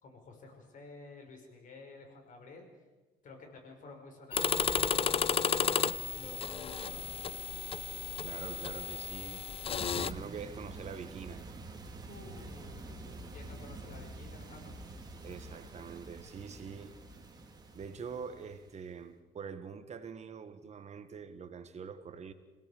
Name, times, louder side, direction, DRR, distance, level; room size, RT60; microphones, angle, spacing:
voice 1, 0.0-2.7 3.2-7.3 12.1-14.8, left 3 dB, 50° left, 5.3 m, -51 dB
sound 1, 4.3-10.1, left 7 dB, 35° left, 0.6 m, -33 dB
voice 2, 8.2-9.5 9.9-11.5 15.2-16.9 17.7-22.3, right 6 dB, 40° right, 1.5 m, -44 dB
sound 2, 9.8-18.9, right 2 dB, 25° right, 3.2 m, -47 dB
27.5 x 17.0 x 7.1 m
cardioid pair, 110°, 17 cm